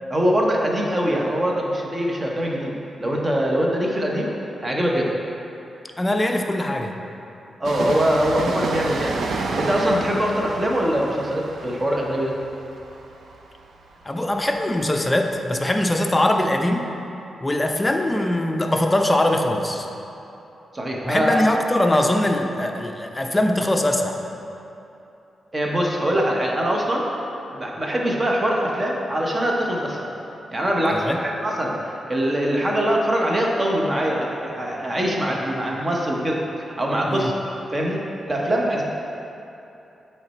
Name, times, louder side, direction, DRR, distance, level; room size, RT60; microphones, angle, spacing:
voice 1, 0.1-2.7 3.0-4.3 4.6-5.1 7.6-9.2 9.6-12.3 20.7-21.5 25.5-27.1 27.5-30.0 30.5-31.8 32.1-36.4 36.8-37.3 37.7-38.0 38.3-38.8, equal, 25° right, -2 dB, 0.9 m, -23 dB
voice 2, 6.0-7.0 14.0-16.9 17.4-19.9 21.0-24.2 30.9-31.2 37.1-37.3, left 1 dB, 20° left, 3 dB, 0.5 m, -22 dB
Train, 7.6-15.1 15.3-15.4, right 3 dB, 70° right, 0.4 m, -31 dB
8.0 x 3.3 x 4.3 m, 2.9 s
cardioid pair, 90°, 0 cm